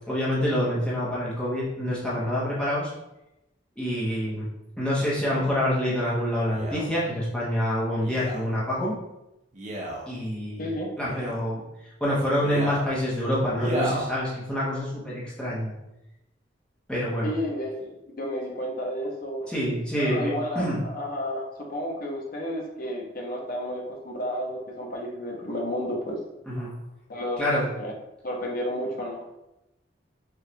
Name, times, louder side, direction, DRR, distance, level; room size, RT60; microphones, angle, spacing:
voice 1, 0.1-2.9 3.8-4.5 4.8-9.0 10.1-10.7 11.0-11.6 12.0-15.7 16.9-17.3 19.5-20.8 26.5-26.7 27.4-27.7, equal, 5° left, -8 dB, 0.9 m, -27 dB
Male speech man speaking, 6.5-6.9 8.0-8.4 9.5-10.1 11.0-11.4 12.4-12.9 13.6-14.1 14.8-14.9, right 1 dB, 40° right, 0.8 m, -32 dB
voice 2, 10.6-10.9 17.2-19.5 19.9-26.2 27.1-27.4 27.8-27.9 28.2-29.2, equal, 50° left, -1 dB, 0.8 m, -31 dB
5.0 x 2.4 x 2.9 m, 0.90 s
head